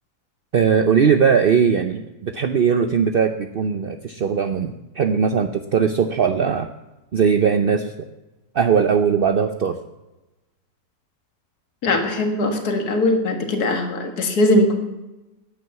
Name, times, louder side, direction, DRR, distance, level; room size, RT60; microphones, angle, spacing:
voice 1, 0.5-6.7 7.1-7.9 8.5-9.8, right 6 dB, 55° right, 7 dB, 0.6 m, -19 dB
voice 2, 11.8-14.7, left 1 dB, 60° left, 5 dB, 2.3 m, -20 dB
14.0 x 9.5 x 7.0 m, 1.0 s
omnidirectional pair, 1.8 m